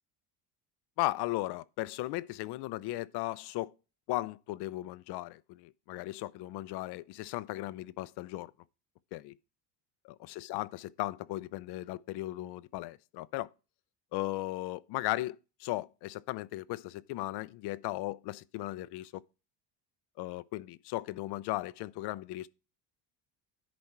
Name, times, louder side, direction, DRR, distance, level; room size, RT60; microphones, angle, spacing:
voice 1, 1.0-3.7 4.1-8.5 9.1-9.3 10.2-13.5 14.1-19.2 20.2-22.5, left 17 dB, 65° left, 0.6 m, -36 dB
10.5 x 4.3 x 4.5 m
cardioid pair, 145°, 44 cm